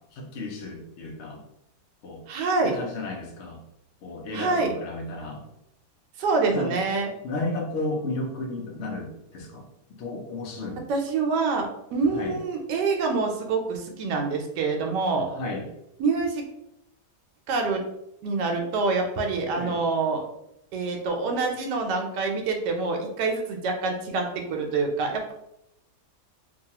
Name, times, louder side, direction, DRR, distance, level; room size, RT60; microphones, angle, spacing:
voice 1, 0.0-1.4 2.0-2.2 2.6-3.6 4.0-5.5 6.4-6.8 7.2-10.8 12.1-12.4 15.3-15.7 19.6-19.8, left 2 dB, 75° left, 1 dB, 0.6 m, -33 dB
voice 2, 2.3-2.7 4.3-4.7 6.2-7.1 10.9-15.3 16.0-16.4 17.5-17.8 18.2-20.2 20.7-25.3, right 4 dB, 80° right, 2 dB, 1.2 m, -26 dB
2.9 x 2.3 x 2.8 m, 0.82 s
omnidirectional pair, 1.8 m